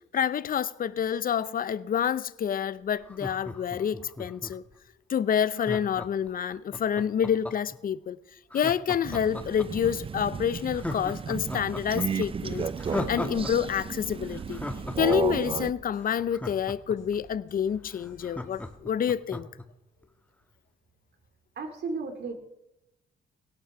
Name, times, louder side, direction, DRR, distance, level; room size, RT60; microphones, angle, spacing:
voice 1, 0.1-4.6 5.1-8.2 8.5-14.6 15.0-19.5, left 8 dB, 45° left, 0.6 m, -28 dB
Laughter, 3.0-4.7 5.6-7.8 8.5-9.9 10.3-10.4 10.7-13.5 13.8-13.9 14.3-17.2 17.6-17.7 17.9-19.6 20.0-20.1, left 2 dB, 5° left, 1.3 m, -37 dB
Crow, 9.0-15.7, right 6 dB, 30° right, 0.4 m, -33 dB
sound 1, 10.8-18.8, left 4 dB, 70° left, 4.3 m, -53 dB
voice 2, 21.6-22.3, right 4 dB, 60° right, 2.5 m, -34 dB
17.0 x 11.5 x 5.9 m
cardioid pair, 90°, 20 cm